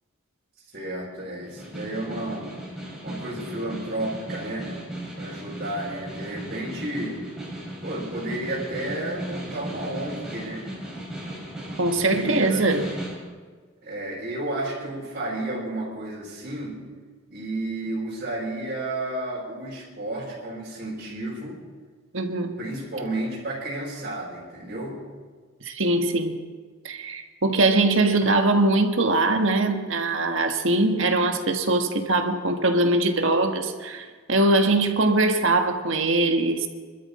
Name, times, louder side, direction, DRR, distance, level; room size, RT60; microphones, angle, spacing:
voice 1, 0.7-2.5 3.0-4.7 5.1-7.2 7.8-10.7 11.9-13.0 13.8-16.8 17.3-21.6 22.6-25.0, right 1 dB, 45° right, -8 dB, 5.3 m, -32 dB
Snare drum, 1.4-13.2, right 1 dB, 5° right, 6.1 m, -36 dB
voice 2, 11.8-12.9 22.1-22.5 25.6-26.4 26.8-36.7, right 2 dB, 65° right, 5 dB, 1.5 m, -22 dB
25.5 x 13.0 x 4.3 m, 1.5 s
head